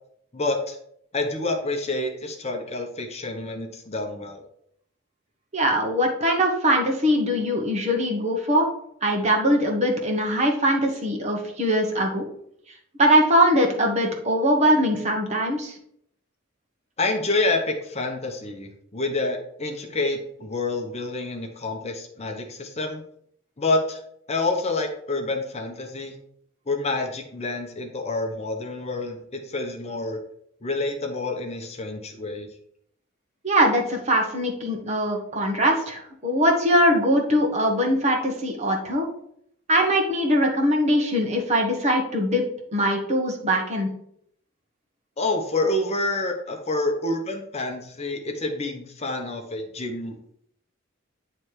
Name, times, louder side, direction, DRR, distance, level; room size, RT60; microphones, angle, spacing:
voice 1, 0.3-0.8 1.1-4.4 17.0-23.0 23.6-24.0 24.3-26.2 26.7-30.2 30.6-32.5 45.2-50.2, left 2 dB, 35° left, 3 dB, 0.8 m, -28 dB
voice 2, 5.5-8.7 9.0-12.2 13.0-15.7 33.4-39.1 39.7-42.4 42.7-43.9, equal, 35° right, 1 dB, 1.3 m, -21 dB
9.2 x 3.3 x 4.6 m, 0.70 s
head